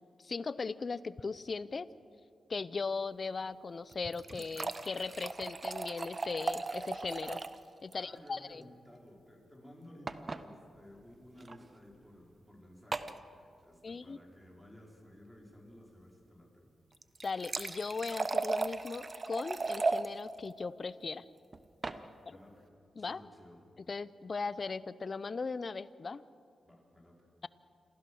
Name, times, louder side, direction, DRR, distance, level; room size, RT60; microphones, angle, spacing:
voice 1, 0.2-1.9 2.5-7.4 7.8-8.6 13.8-14.2 17.2-21.2 23.0-23.2 23.9-26.2, left 4 dB, 45° left, 17 dB, 0.6 m, -38 dB
sound 1, 3.9-7.6 7.9-8.0 8.3-8.4 10.1-10.4 11.4-11.6 12.9-13.2 16.9-20.1 21.5-22.0, right 3 dB, 40° right, 0.9 m, -36 dB
voice 2, 7.9-16.7 21.8-22.7 23.0-23.6 26.6-27.3, left 1 dB, ahead, -1 dB, 5.0 m, -55 dB
27.5 x 15.0 x 6.4 m, 2.4 s
cardioid pair, 70°, 0 cm